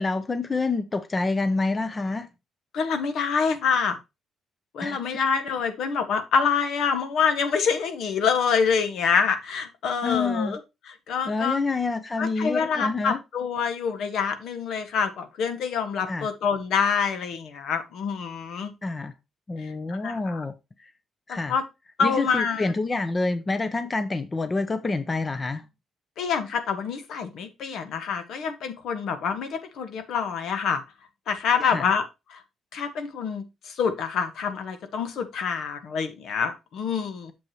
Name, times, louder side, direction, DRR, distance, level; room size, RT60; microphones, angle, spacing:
voice 1, 0.0-2.3 4.8-5.0 10.0-10.6 11.2-13.2 16.1-16.3 18.8-19.1 19.5-20.5 20.8-20.9 21.3-21.5 22.0-25.6 31.6-31.9, left 3 dB, 25° left, 0.8 m, -27 dB
voice 2, 2.7-4.0 4.7-10.6 11.1-11.6 12.2-18.7 19.6-20.4 21.3-21.6 22.0-22.7 26.2-30.8 31.3-32.0 32.3-32.4 32.7-37.3, left 6 dB, 75° left, 1.5 m, -26 dB
7.8 x 7.1 x 3.1 m
cardioid pair, 90°, 0 cm